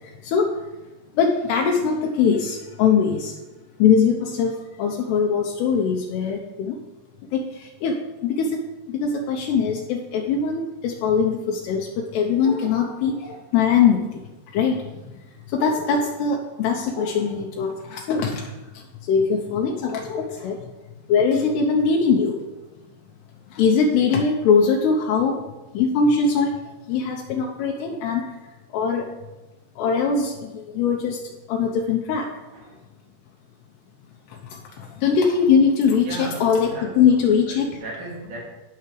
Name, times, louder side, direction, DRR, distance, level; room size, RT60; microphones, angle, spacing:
voice 1, 1.2-3.3 3.8-6.8 7.3-7.4 7.8-7.9 8.2-8.5 8.9-11.9 12.1-14.0 14.5-14.8 15.5-18.5 19.1-20.6 21.1-22.3 23.6-25.4 25.7-26.5 26.9-28.2 28.7-29.0 29.8-31.2 31.5-32.2 35.0-36.7 37.0-37.7, left 6 dB, 85° left, 1 dB, 2.5 m, -21 dB
voice 2, 32.5-32.8 36.0-38.4, right 2 dB, 65° right, -4 dB, 4.4 m, -36 dB
17.0 x 6.0 x 3.2 m, 1.1 s
omnidirectional pair, 5.3 m